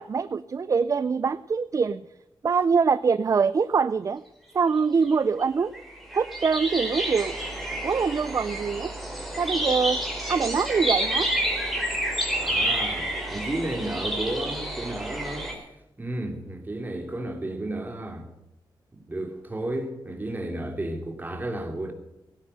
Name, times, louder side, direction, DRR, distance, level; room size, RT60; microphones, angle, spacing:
voice 1, 0.0-2.0 2.4-4.2 4.5-5.7 6.1-7.4 7.8-8.9 9.4-10.0 10.3-11.3, right 5 dB, 40° right, 16 dB, 0.5 m, -24 dB
sound 1, 5.1-5.2 5.4-15.5, right 1 dB, ahead, 4.3 m, -29 dB
voice 2, 12.3-15.7 16.0-18.3 18.9-21.9, right 1 dB, 20° right, 5 dB, 2.9 m, -33 dB
17.5 x 10.0 x 6.6 m, 0.91 s
wide cardioid pair, 115°, 8 cm